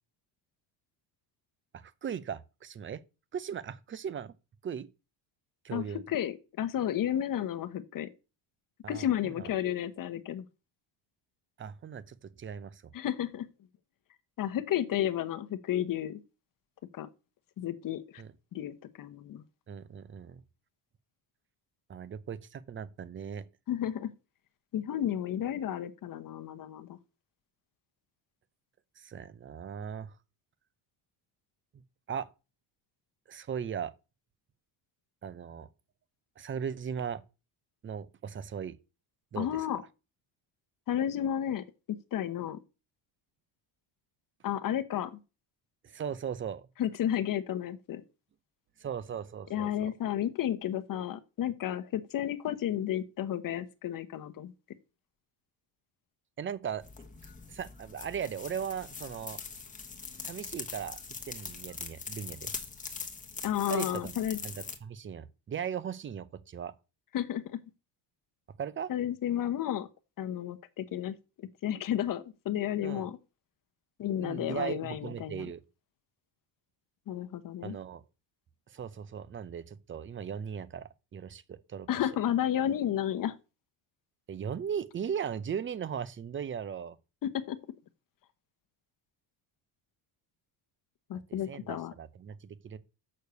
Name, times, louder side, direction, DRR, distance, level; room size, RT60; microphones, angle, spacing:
voice 1, 1.7-3.0 3.3-4.3 4.6-4.9 5.6-6.0 8.8-9.5 11.6-12.8 18.2-18.3 19.7-20.4 21.9-23.4 29.0-30.1 32.1-32.3 33.3-33.9 35.2-35.7 36.4-37.2 37.8-38.8 39.3-39.5 45.8-46.7 48.8-49.9 56.4-56.9 57.5-59.4 60.2-61.0 61.3-62.5 63.7-64.1 64.4-66.7 68.6-68.9 72.8-73.1 74.2-75.6 77.6-78.0 78.7-81.9 84.3-87.0 91.5-92.8, right 7 dB, 25° right, 0.6 m, -38 dB
voice 2, 5.7-8.1 8.9-10.4 12.9-13.5 14.4-16.2 16.9-17.1 17.6-18.2 18.5-19.4 23.7-24.1 24.7-27.0 39.3-39.8 40.9-41.6 42.1-42.6 44.4-45.1 46.8-48.0 49.5-54.5 63.4-64.4 67.1-67.4 68.9-69.9 70.2-73.2 74.0-75.5 77.1-77.8 81.9-83.3 87.2-87.6 91.1-91.9, left 11 dB, 45° left, 1.0 m, -32 dB
sound 1, 56.8-64.8, left 5 dB, 15° left, 1.3 m, -42 dB
6.6 x 6.6 x 6.8 m
cardioid pair, 145°, 47 cm